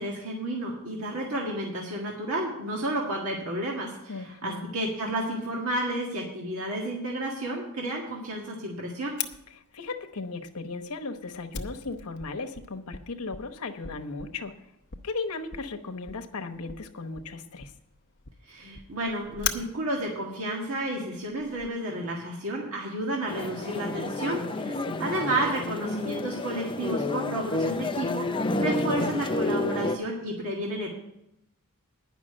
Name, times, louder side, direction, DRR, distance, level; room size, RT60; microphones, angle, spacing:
voice 1, 0.0-9.2 18.5-30.9, right 1 dB, 70° right, -2 dB, 1.8 m, -31 dB
voice 2, 4.1-4.7 9.7-14.5 15.0-17.7 24.6-25.0, left 3 dB, 85° left, 5 dB, 1.0 m, -36 dB
Fire, 9.2-21.7, left 8 dB, 55° left, 0.8 m, -41 dB
sound 1, 23.3-30.0, left 2 dB, 20° left, 0.5 m, -30 dB
10.0 x 5.9 x 8.7 m, 0.83 s
head